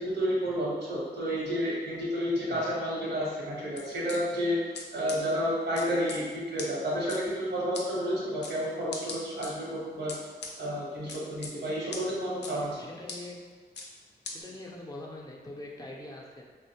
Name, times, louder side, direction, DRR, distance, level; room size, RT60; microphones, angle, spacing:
voice 1, 0.0-4.6 4.9-10.2 10.6-12.8, equal, 85° right, -6 dB, 0.9 m, -30 dB
sound 1, 3.8-4.2 4.7-4.8 5.1-5.2 5.8-6.2 6.6-6.7 7.1-7.2 7.7-7.9 8.4-8.5 8.9-9.5 10.1-10.5 11.1-11.5 11.9-12.0 12.4-12.5 13.1-13.2 13.8-13.9 14.3-14.4, left 4 dB, 85° left, 0.4 m, -39 dB
voice 2, 11.9-13.4 14.3-16.4, left 2 dB, 20° left, -2 dB, 0.4 m, -44 dB
2.9 x 2.0 x 2.8 m, 1.4 s
wide cardioid pair, 80°, 17 cm